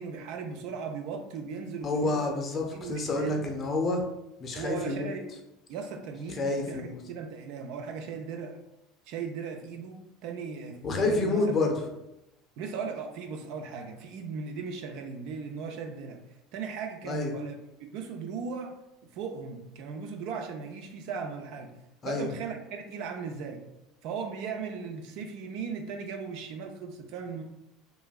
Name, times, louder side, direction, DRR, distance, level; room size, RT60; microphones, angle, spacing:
voice 1, 0.0-2.3 2.7-3.4 4.5-5.4 5.7-8.6 9.1-11.5 12.6-16.2 16.5-17.6 17.9-18.8 19.1-21.7 22.0-23.6 24.0-27.4, right 5 dB, 55° right, 4 dB, 0.3 m, -37 dB
voice 2, 1.8-4.0 4.4-5.1 6.3-7.0 10.8-11.7 17.0-17.3 22.0-22.3, left 2 dB, 35° left, 2 dB, 0.6 m, -28 dB
3.0 x 2.5 x 2.3 m, 0.90 s
figure-of-eight pair, 70°, 0 cm